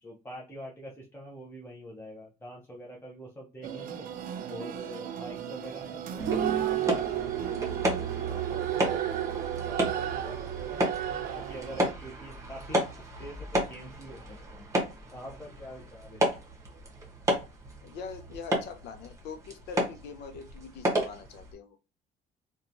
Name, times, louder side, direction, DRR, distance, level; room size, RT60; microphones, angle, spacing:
voice 1, 0.0-4.1 4.5-10.9 11.3-14.7 15.1-16.4, equal, 10° left, -3 dB, 0.6 m, -45 dB
sound 1, 3.6-11.9, right 11 dB, 55° right, 0.4 m, -33 dB
sound 2, 6.2-21.5, right 1 dB, 20° right, 0.9 m, -33 dB
voice 2, 17.8-21.8, left 5 dB, 80° left, 7 dB, 0.5 m, -43 dB
2.9 x 2.2 x 2.6 m, 0.28 s
cardioid pair, 110°, 17 cm